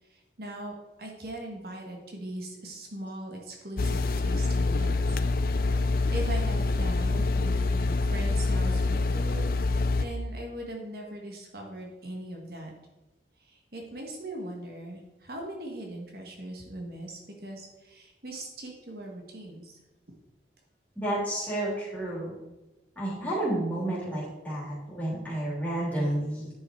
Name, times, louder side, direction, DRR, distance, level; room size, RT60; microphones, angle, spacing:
voice 1, 0.1-5.2 5.7-12.7 13.4-19.7, right 1 dB, 55° right, 0 dB, 1.4 m, -40 dB
sound 1, 3.8-10.1, left 3 dB, 55° left, 0.5 m, -26 dB
voice 2, 20.9-22.4 22.9-26.5, right 1 dB, 10° left, -7 dB, 3.2 m, -31 dB
10.5 x 5.5 x 4.4 m, 1.0 s
head